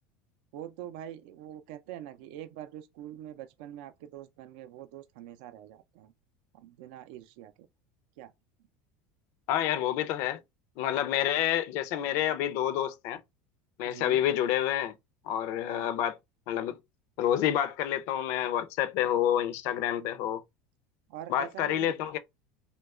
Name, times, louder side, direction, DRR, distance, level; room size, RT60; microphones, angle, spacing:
voice 1, 0.5-6.1 6.5-7.7 8.2-8.3 13.8-14.2 15.6-15.9 20.0-20.1 21.1-22.2, right 12 dB, 70° right, 0.4 m, -44 dB
voice 2, 9.5-10.4 10.8-13.2 13.8-14.9 15.3-16.2 16.5-16.8 17.2-20.4 21.3-22.2, left 11 dB, 60° left, 0.4 m, -28 dB
2.9 x 2.2 x 3.5 m
supercardioid pair, 140°, 5 cm